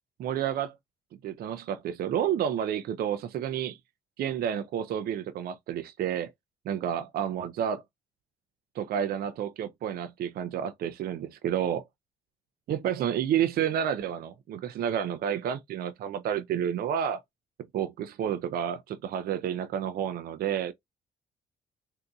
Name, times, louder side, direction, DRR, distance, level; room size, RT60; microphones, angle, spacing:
voice 1, 0.2-0.8 1.2-3.8 4.2-6.3 6.7-7.8 8.7-11.8 12.7-17.2 17.7-20.7, right 9 dB, 65° right, 0.5 m, -30 dB
3.8 x 2.7 x 2.3 m
supercardioid pair, 75°, 17 cm